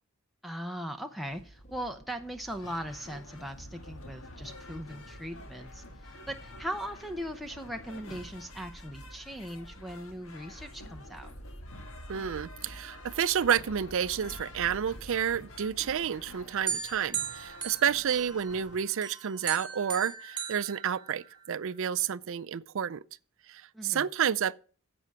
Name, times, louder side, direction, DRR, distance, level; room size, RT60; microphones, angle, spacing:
voice 1, 0.4-11.3 23.7-24.1, equal, ahead, 0.6 m, -39 dB
sound 1, 1.3-16.3, right 1 dB, 35° left, 1.3 m, -50 dB
sound 2, 2.5-18.8, left 2 dB, 65° left, 1.6 m, -50 dB
voice 2, 12.1-23.0 23.5-24.6, right 8 dB, 60° right, 0.4 m, -30 dB
sound 3, 16.7-18.6 19.0-21.5, right 7 dB, 20° right, 2.9 m, -37 dB
11.0 x 7.7 x 4.8 m
head